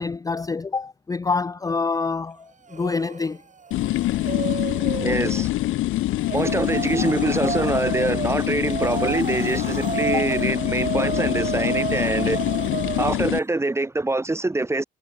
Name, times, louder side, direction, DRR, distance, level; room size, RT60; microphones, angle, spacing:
voice 1, 0.0-3.4 10.1-10.3, left 4 dB, 15° left, 0.5 m, -26 dB
sound 1, 2.7-3.3 3.6-5.5 6.2-13.4, right 5 dB, 40° right, 3.9 m, -31 dB
sound 2, 3.7-13.4, left 16 dB, 90° left, 1.7 m, -25 dB
voice 2, 5.0-5.6 6.3-12.4 13.0-14.8, right 2 dB, 15° right, 1.1 m, -24 dB
cardioid pair, 90°, 20 cm